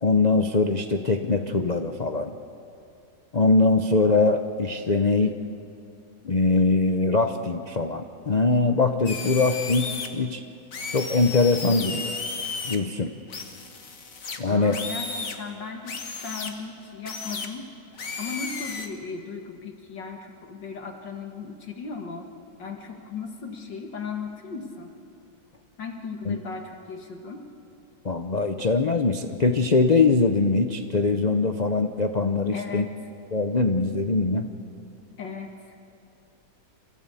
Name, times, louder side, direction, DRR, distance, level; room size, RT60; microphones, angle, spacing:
voice 1, 0.0-2.3 3.3-5.4 6.2-10.4 10.9-12.1 12.6-13.1 14.4-14.8 26.3-26.4 28.0-32.9 33.3-34.5, left 3 dB, 90° left, 6 dB, 0.3 m, -22 dB
sound 1, 9.1-10.1 10.7-12.8 13.3-15.4 15.9-16.5 17.1-17.5 18.0-18.9, left 4 dB, 45° left, 1.8 m, -34 dB
voice 2, 14.5-17.7 18.2-22.3 22.6-24.9 25.8-27.4 32.5-32.9 35.2-35.8, left 5 dB, 70° left, 3 dB, 2.3 m, -37 dB
26.5 x 16.0 x 8.3 m, 2.6 s
omnidirectional pair, 2.1 m